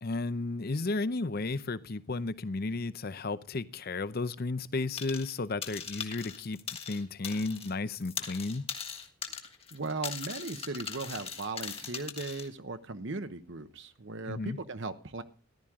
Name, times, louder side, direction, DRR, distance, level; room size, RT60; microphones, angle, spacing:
voice 1, 0.0-6.6 6.9-8.6 14.3-14.6, left 3 dB, 45° left, 0.6 m, -33 dB
sound 1, 5.0-5.3 5.6-7.7 8.0-12.5, left 7 dB, 25° left, 1.5 m, -40 dB
voice 2, 9.7-15.2, right 3 dB, 55° right, 0.9 m, -37 dB
14.5 x 11.5 x 3.7 m
head